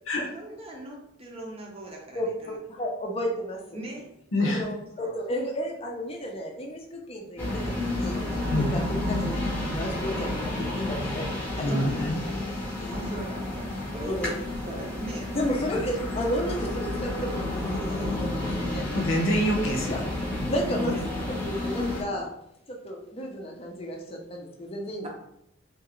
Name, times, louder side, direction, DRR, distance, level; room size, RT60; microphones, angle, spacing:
voice 1, 0.3-2.6 3.7-4.1 4.4-5.1 8.5-8.8 11.6-12.4 12.9-15.4 15.6-15.8 20.8-21.1, right 1 dB, 30° right, 0 dB, 0.6 m, -40 dB
voice 2, 2.1-3.8 4.4-8.2 8.6-11.3 11.6-11.7 12.8-13.0 14.0-14.3 15.3-18.9 19.9-20.0 20.4-21.0 21.3-22.3 22.7-25.1, equal, 30° left, 0 dB, 0.5 m, -33 dB
voice 3, 4.3-4.6 8.5-8.7 11.6-12.2 15.7-15.8 18.9-20.2, left 1 dB, 80° left, 1 dB, 0.6 m, -26 dB
sound 1, 7.4-22.0, left 1 dB, 5° left, 0.8 m, -31 dB
2.8 x 2.4 x 2.9 m, 0.79 s
head